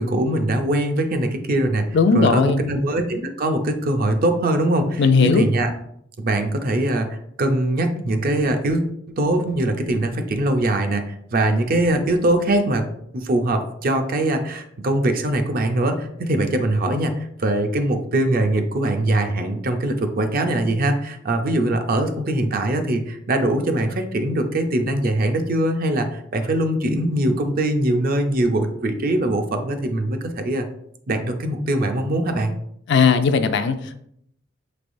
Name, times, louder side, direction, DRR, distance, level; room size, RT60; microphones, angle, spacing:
voice 1, 0.0-1.9 2.1-5.7 6.2-12.8 13.1-30.7 31.1-32.5, right 1 dB, 50° right, 6 dB, 0.5 m, -22 dB
voice 2, 1.9-2.6 5.0-5.5 32.9-34.0, left 5 dB, 65° left, 9 dB, 0.4 m, -17 dB
5.4 x 3.3 x 2.6 m, 0.71 s
head